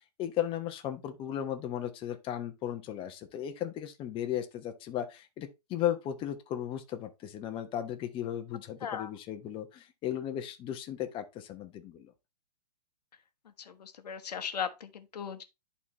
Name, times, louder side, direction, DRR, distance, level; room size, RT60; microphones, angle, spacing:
voice 1, 0.2-12.1, left 11 dB, 25° left, 1.0 m, -36 dB
voice 2, 13.7-15.4, left 7 dB, 70° left, 1.1 m, -37 dB
11.0 x 4.1 x 2.9 m
hypercardioid pair, 125°, 21 cm